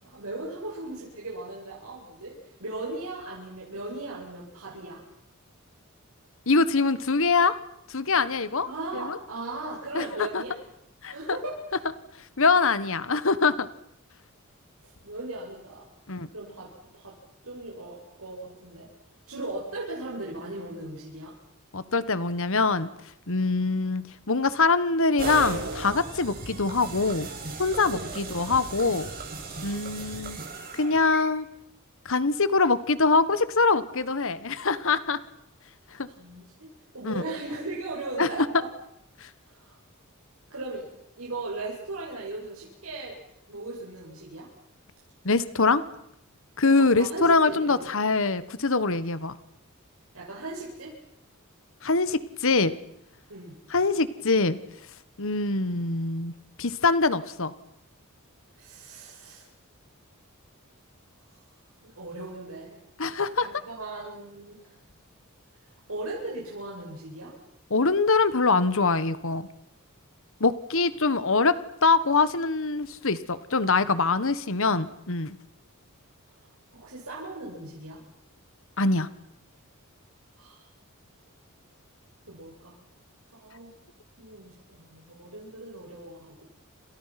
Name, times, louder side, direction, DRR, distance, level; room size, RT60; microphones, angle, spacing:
voice 1, 0.0-5.0 8.6-10.6 11.1-11.5 14.8-15.9 16.3-17.2 17.4-18.9 19.3-21.3 27.9-28.1 36.1-36.7 36.9-38.7 39.5-39.7 40.5-40.9 41.2-43.1 43.5-44.5 46.7-47.8 50.1-50.9 53.3-53.5 58.5-59.5 61.8-62.8 63.4-64.7 65.9-67.3 76.7-78.0 80.4-80.6 82.3-82.8 83.3-83.7 84.2-86.4, right 2 dB, 85° right, -4 dB, 7.3 m, -38 dB
voice 2, 6.5-7.6 7.9-8.7 8.9-9.2 9.9-10.4 11.0-11.4 12.4-13.7 16.1-16.3 21.7-22.9 23.3-27.3 27.6-29.1 29.6-30.4 30.7-31.5 32.0-35.2 35.9-36.1 37.0-37.1 38.2-38.3 39.2-39.3 45.2-45.8 46.6-49.4 51.8-52.7 53.7-54.6 55.2-56.3 56.6-57.5 63.0-63.5 67.7-69.5 70.4-75.4 78.8-79.1, left 4 dB, 65° left, 14 dB, 1.4 m, -24 dB
sound 1, 25.2-31.2, right 3 dB, 45° right, 7.2 m, -36 dB
29.5 x 27.0 x 6.0 m, 0.77 s
head